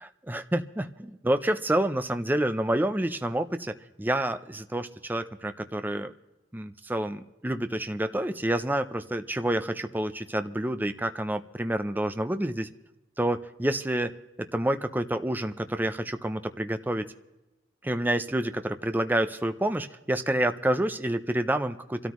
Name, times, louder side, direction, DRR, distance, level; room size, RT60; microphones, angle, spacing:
voice 1, 0.3-6.1 6.5-12.7 13.2-14.1 14.4-17.1 17.8-22.1, right 1 dB, 10° right, 8 dB, 0.5 m, -28 dB
27.5 x 13.0 x 3.1 m, 0.99 s
head